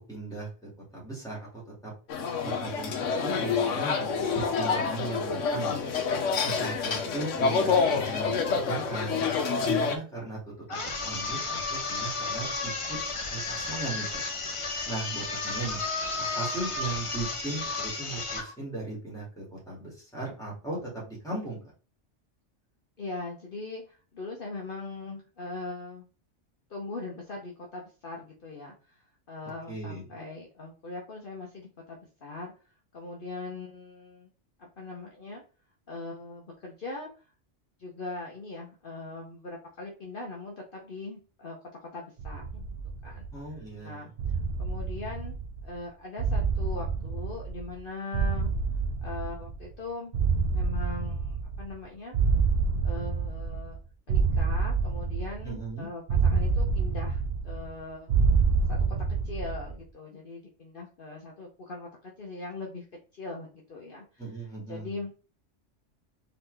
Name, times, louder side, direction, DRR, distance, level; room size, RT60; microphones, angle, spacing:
voice 1, 0.1-1.9 2.4-5.9 6.4-9.2 9.6-12.7 13.3-14.2 14.8-15.8 16.2-20.8 21.1-21.6 29.7-30.0 43.3-44.1 55.4-55.9 64.2-64.9, right 3 dB, 5° left, -6 dB, 2.3 m, -37 dB
sound 1, 2.1-10.0, left 5 dB, 85° left, 1.1 m, -27 dB
sound 2, 10.7-18.5, left 3 dB, 35° left, 0.6 m, -33 dB
voice 2, 23.0-26.1 26.7-32.5 32.9-34.3 34.6-35.4 35.9-37.3 37.8-42.8 43.0-48.5 49.0-50.1 50.5-52.1 52.8-53.8 54.1-58.1 58.7-58.9 59.2-62.8 63.1-65.1, left 3 dB, 50° left, -1 dB, 1.0 m, -41 dB
sound 3, 42.2-43.5 44.2-45.7 46.2-47.8 48.1-49.7 50.1-51.8 52.1-53.8 54.1-55.7 56.1-57.8 58.1-59.7, right 4 dB, 60° right, 0.9 m, -27 dB
4.0 x 3.9 x 3.3 m, 0.36 s
omnidirectional pair, 1.2 m